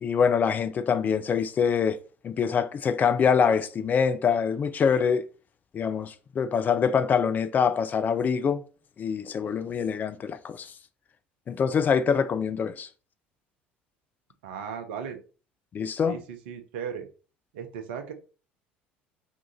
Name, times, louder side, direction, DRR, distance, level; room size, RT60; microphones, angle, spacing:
voice 1, 0.0-2.0 2.2-5.2 5.7-8.6 9.0-10.7 11.5-12.9 15.7-16.2, left 6 dB, 30° left, 0.4 m, -25 dB
voice 2, 14.4-15.2 16.1-17.1 17.5-18.1, right 7 dB, 65° right, 0.6 m, -36 dB
3.7 x 2.8 x 3.9 m
figure-of-eight pair, 60°, 6 cm